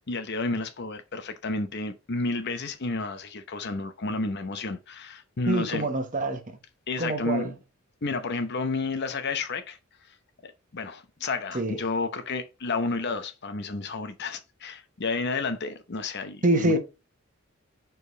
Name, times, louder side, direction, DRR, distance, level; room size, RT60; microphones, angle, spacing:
voice 1, 0.1-5.9 6.9-7.5 8.0-9.8 10.4-16.8, left 3 dB, 50° left, 0.8 m, -31 dB
voice 2, 5.5-6.6 7.0-7.5 11.5-11.8 16.4-16.8, right 1 dB, 40° right, 1.1 m, -25 dB
5.1 x 4.7 x 3.9 m
head